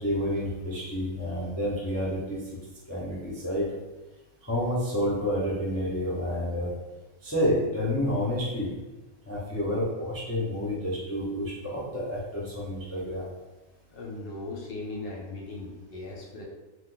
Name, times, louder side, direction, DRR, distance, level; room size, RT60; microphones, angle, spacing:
voice 1, 0.0-2.4 2.9-3.7 4.4-6.7 7.2-8.7 9.3-13.2, equal, 25° left, -7 dB, 0.3 m, -29 dB
voice 2, 13.9-16.4, left 2 dB, 60° left, -2 dB, 0.6 m, -38 dB
2.5 x 2.4 x 3.7 m, 1.1 s
omnidirectional pair, 1.5 m